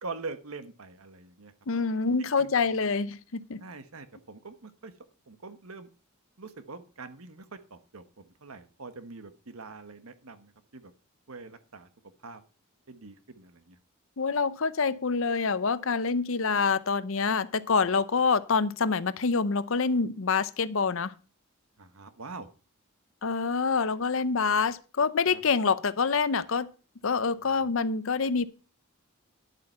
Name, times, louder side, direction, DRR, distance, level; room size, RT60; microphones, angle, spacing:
voice 1, 0.0-1.5 2.2-2.8 3.6-4.9 5.3-5.9 6.4-10.9 11.3-11.9 12.2-12.4 12.9-13.8 21.8-22.5 25.3-25.4 27.4-27.7, right 3 dB, 80° right, 11 dB, 1.2 m, -44 dB
voice 2, 1.7-3.6 14.2-21.1 23.2-26.7 27.0-28.5, left 5 dB, 65° left, 16 dB, 0.7 m, -26 dB
11.0 x 7.6 x 5.6 m, 0.35 s
head